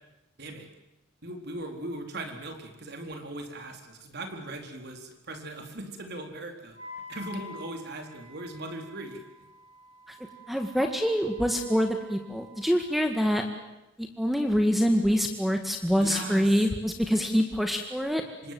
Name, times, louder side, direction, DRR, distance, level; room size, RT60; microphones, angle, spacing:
voice 1, 0.4-0.7 1.2-6.8 7.1-9.2 16.0-16.6 18.4-18.5, right 2 dB, 60° right, 4 dB, 4.3 m, -39 dB
Wind instrument woodwind instrument, 6.7-12.9, left 1 dB, 30° left, 7.8 m, -48 dB
voice 2, 10.5-13.4 14.2-18.2, equal, ahead, 4 dB, 1.9 m, -25 dB
28.0 x 26.0 x 7.8 m, 0.94 s
head